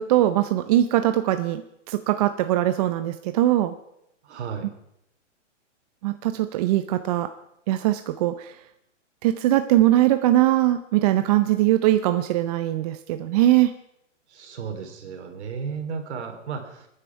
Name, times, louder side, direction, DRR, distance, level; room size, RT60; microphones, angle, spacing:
voice 1, 0.0-3.7 6.0-7.3 7.7-8.6 9.2-13.7, right 14 dB, 30° right, 10 dB, 0.6 m, -21 dB
voice 2, 4.2-4.7 14.3-16.9, right 6 dB, 60° right, 5 dB, 3.4 m, -34 dB
25.0 x 10.0 x 4.6 m, 0.78 s
hypercardioid pair, 140°, 37 cm